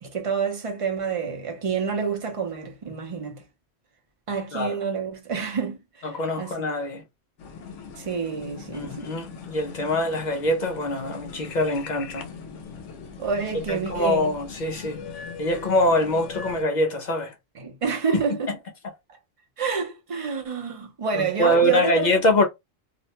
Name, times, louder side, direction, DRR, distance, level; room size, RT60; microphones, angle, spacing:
voice 1, 0.0-3.4 4.3-6.5 8.0-9.1 13.2-14.4 17.6-18.5 19.1-19.2 19.6-22.1, right 6 dB, 40° right, 0.5 m, -28 dB
voice 2, 6.0-7.0 8.7-12.3 13.7-15.0 15.4-17.3 21.1-22.4, left 1 dB, 55° left, 0.5 m, -24 dB
sound 1, 7.4-16.6, left 5 dB, 80° left, 0.9 m, -40 dB
2.5 x 2.1 x 2.8 m
omnidirectional pair, 1.3 m